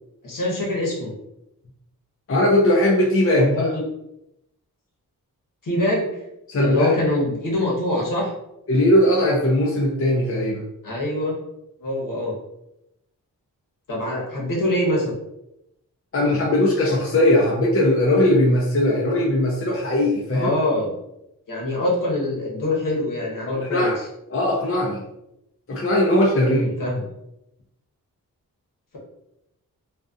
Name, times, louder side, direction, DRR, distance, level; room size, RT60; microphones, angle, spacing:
voice 1, 0.2-1.1 3.4-3.8 5.6-6.1 6.6-8.3 10.8-11.3 11.8-12.3 13.9-15.1 20.3-20.9 21.5-24.1 26.4-26.9, left 1 dB, 60° left, -3 dB, 1.1 m, -24 dB
voice 2, 2.3-3.7 6.5-6.9 8.7-10.6 16.1-20.5 23.5-23.9 24.3-25.0 25.7-26.7, left 1 dB, 35° left, -3 dB, 0.6 m, -19 dB
2.6 x 2.3 x 2.4 m, 0.85 s
cardioid pair, 45°, 37 cm